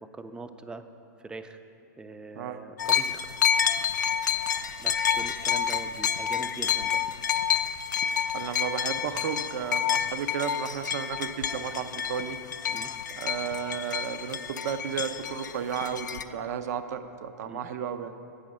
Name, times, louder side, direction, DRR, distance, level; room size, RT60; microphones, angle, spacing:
voice 1, 0.1-0.8 1.2-1.6 2.0-3.3 4.8-7.0 12.7-12.9 17.5-17.7, right 3 dB, 10° right, 9 dB, 0.3 m, -42 dB
sound 1, 2.8-16.2, left 8 dB, 90° left, 0.4 m, -29 dB
voice 2, 8.3-12.4 13.2-18.1, right 8 dB, 65° right, 11 dB, 0.5 m, -33 dB
8.3 x 5.0 x 6.3 m, 2.8 s
hypercardioid pair, 115°, 10 cm